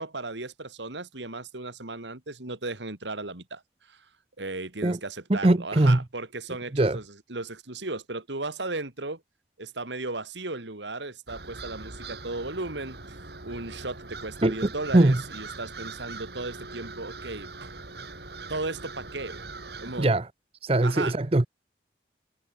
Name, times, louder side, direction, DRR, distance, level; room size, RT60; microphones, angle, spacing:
voice 1, 0.0-4.1 4.4-9.2 9.6-17.7 18.5-19.4 19.8-20.1 20.8-21.1, right 2 dB, 85° right, 3.0 m, -36 dB
voice 2, 5.3-6.0 6.7-7.0 14.4-15.2 20.0-20.3 20.6-21.5, right 1 dB, 30° right, 0.7 m, -21 dB
sound 1, 11.3-20.1, right 3 dB, 65° right, 3.9 m, -41 dB
head